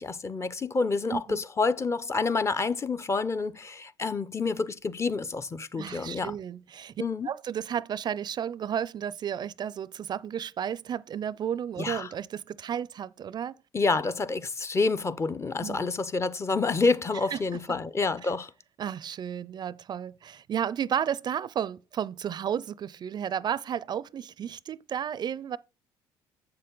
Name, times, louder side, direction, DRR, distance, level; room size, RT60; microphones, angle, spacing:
voice 1, 0.0-6.3 7.0-7.3 11.8-12.1 13.7-18.5, left 4 dB, 30° left, 0.6 m, -28 dB
voice 2, 1.1-1.4 5.8-6.9 7.2-13.5 15.6-15.9 17.3-17.4 18.2-18.3 18.8-25.6, right 9 dB, 45° right, 0.4 m, -33 dB
7.9 x 6.7 x 3.8 m
supercardioid pair, 75°, 10 cm